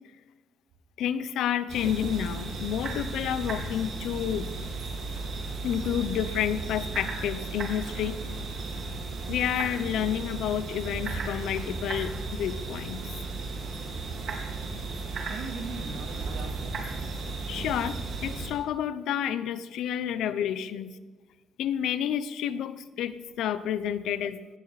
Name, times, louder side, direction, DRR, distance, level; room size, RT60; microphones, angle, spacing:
voice 1, 1.0-4.5 5.6-8.3 9.3-13.1 17.5-20.9 21.6-24.4, left 10 dB, 90° left, 14 dB, 0.8 m, -30 dB
sound 1, 1.7-18.5, right 3 dB, 65° right, 4.0 m, -35 dB
voice 2, 15.2-16.8 20.7-20.9 22.5-22.6, right 5 dB, 85° right, 4 dB, 2.4 m, -41 dB
19.0 x 15.0 x 4.2 m, 1.2 s
cardioid pair, 105°, 0 cm